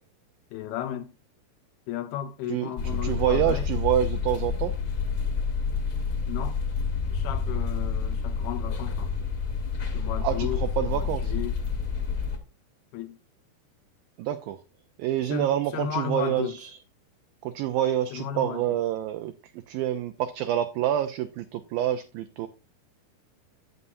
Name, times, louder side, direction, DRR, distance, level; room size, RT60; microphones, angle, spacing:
voice 1, 0.5-1.1 1.9-3.7 6.3-6.6 7.1-9.2 9.9-11.6 12.9-13.2 15.3-16.6 18.1-18.8, left 10 dB, 80° left, 2.8 m, -34 dB
voice 2, 2.5-4.7 10.2-11.3 14.2-14.6 15.0-16.8 17.4-19.3 19.7-22.5, right 11 dB, 80° right, 2.2 m, -27 dB
sound 1, 2.8-12.4, left 5 dB, 45° left, 2.0 m, -29 dB
11.0 x 8.1 x 2.6 m
omnidirectional pair, 4.6 m